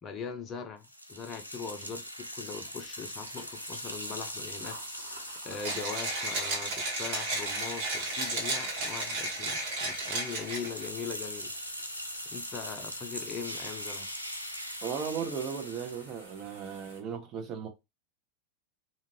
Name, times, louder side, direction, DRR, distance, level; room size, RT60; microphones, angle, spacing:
voice 1, 0.0-11.5 12.3-14.1, left 6 dB, 25° left, 0.5 m, -41 dB
sound 1, 0.8-16.1, equal, 85° left, 0.5 m, -41 dB
sound 2, 2.7-17.0, equal, 80° right, 1.1 m, -50 dB
Mechanisms, 5.6-10.9, right 2 dB, 50° right, 1.3 m, -33 dB
voice 2, 14.8-17.7, right 7 dB, 35° right, 0.7 m, -36 dB
2.7 x 2.5 x 2.9 m
figure-of-eight pair, 90°, 0 cm